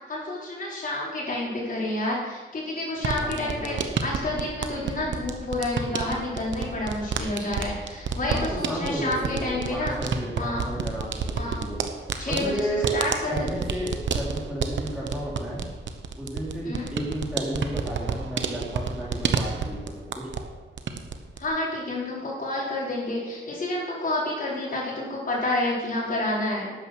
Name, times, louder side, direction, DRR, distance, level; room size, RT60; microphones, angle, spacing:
voice 1, 0.1-9.9 10.4-10.6 11.4-11.6 12.2-13.5 16.6-16.9 21.4-26.7, left 2 dB, 50° left, -5 dB, 4.8 m, -29 dB
sound 1, 3.0-20.5 20.8-21.5, right 5 dB, 85° right, 1.0 m, -30 dB
voice 2, 3.2-3.8 8.3-11.3 11.6-11.8 12.3-12.9 13.3-15.6 16.1-20.3, right 1 dB, 5° right, -6 dB, 3.4 m, -33 dB
12.0 x 9.1 x 6.3 m, 1.3 s
wide cardioid pair, 125°, 19 cm